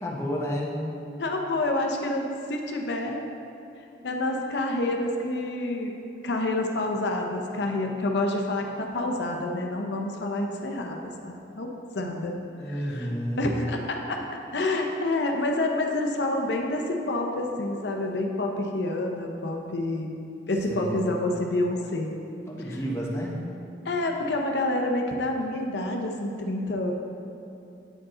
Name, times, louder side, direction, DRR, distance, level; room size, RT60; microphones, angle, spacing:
voice 1, 0.0-0.8 12.6-13.5 20.7-21.4 22.5-23.5, equal, 15° left, -3 dB, 0.8 m, -31 dB
voice 2, 1.2-3.2 4.0-5.9 6.2-11.7 11.9-12.4 12.7-13.1 13.4-14.2 14.5-20.1 20.5-22.1 22.7-22.8 23.8-26.9, left 2 dB, 80° left, 2 dB, 0.6 m, -28 dB
8.8 x 4.8 x 3.8 m, 2.7 s
head